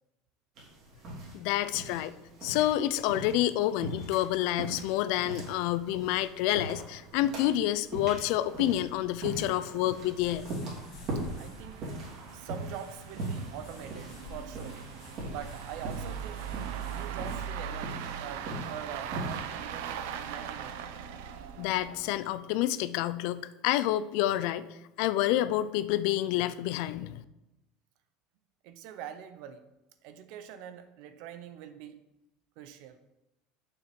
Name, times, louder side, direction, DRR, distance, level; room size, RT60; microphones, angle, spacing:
sound 1, 0.6-19.5, right 2 dB, 40° right, 2.9 m, -41 dB
voice 1, 1.3-2.1 2.4-10.5 21.6-24.7 25.0-27.2, left 13 dB, 60° left, 15 dB, 0.5 m, -28 dB
sound 2, 6.3-6.4 6.8-6.9 7.2-7.3 8.0-22.4, right 8 dB, 85° right, 0.8 m, -41 dB
sound 3, 10.2-17.5, left 1 dB, 35° left, 2.2 m, -49 dB
voice 2, 11.1-11.9 12.3-14.8 15.3-16.4 16.9-20.8 28.6-29.7 30.0-32.0 32.6-33.0, right 9 dB, 55° right, 10 dB, 0.9 m, -44 dB
7.2 x 6.5 x 6.0 m, 0.94 s
cardioid pair, 170°, 0 cm